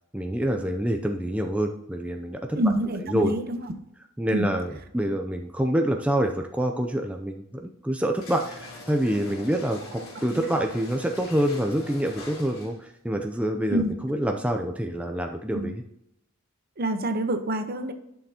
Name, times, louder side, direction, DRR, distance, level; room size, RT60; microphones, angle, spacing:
voice 1, 0.1-2.6 3.0-3.3 4.2-15.8, right 1 dB, 5° right, 3 dB, 0.4 m, -27 dB
voice 2, 2.6-3.6 4.3-4.5 10.3-10.4 13.7-13.9 15.5-15.7 16.8-17.9, right 1 dB, 45° right, 8 dB, 0.9 m, -26 dB
sound 1, 8.1-12.9, left 2 dB, 75° left, 3.4 m, -43 dB
11.0 x 6.6 x 2.9 m, 0.82 s
head